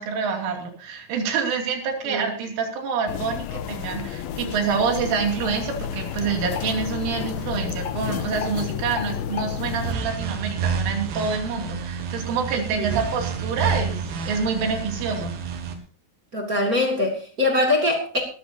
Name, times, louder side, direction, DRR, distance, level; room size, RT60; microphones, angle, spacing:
voice 1, 0.0-15.3, right 5 dB, 85° right, 2 dB, 5.2 m, -27 dB
sound 1, 3.1-9.9, left 9 dB, 85° left, 2.2 m, -31 dB
sound 2, 9.7-15.7, right 6 dB, 60° right, 3.2 m, -29 dB
voice 2, 16.3-18.2, left 2 dB, 25° right, 2 dB, 2.0 m, -23 dB
20.0 x 13.5 x 2.8 m, 0.42 s
omnidirectional pair, 5.5 m